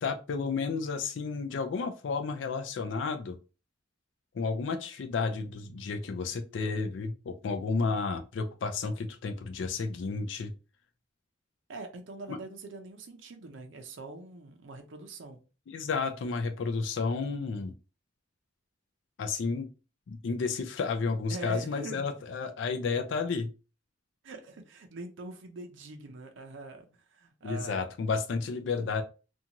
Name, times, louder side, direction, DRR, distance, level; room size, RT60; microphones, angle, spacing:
voice 1, 0.0-3.4 4.3-10.5 12.3-12.4 15.7-17.7 19.2-19.7 20.1-23.5 27.4-29.0, left 4 dB, 75° left, 0.4 m, -32 dB
voice 2, 11.7-15.4 21.3-22.1 24.2-27.8, right 3 dB, 85° right, 0.5 m, -43 dB
2.6 x 2.3 x 2.8 m
head